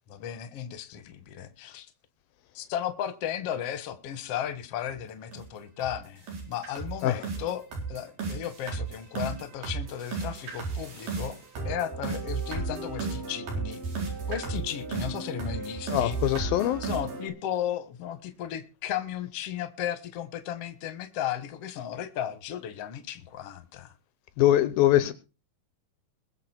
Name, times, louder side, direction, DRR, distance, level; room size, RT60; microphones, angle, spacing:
voice 1, 0.1-1.9 2.5-11.4 11.7-13.8 14.3-16.2 16.8-23.9 25.0-25.1, left 10 dB, 50° left, 2.0 m, -35 dB
sound 1, 4.8-4.9 5.3-5.5 5.8-6.0 6.3-17.3, right 4 dB, 60° right, 5.9 m, -34 dB
voice 2, 15.9-16.8 24.4-25.1, left 13 dB, 80° left, 2.5 m, -22 dB
22.0 x 7.5 x 4.5 m
omnidirectional pair, 4.3 m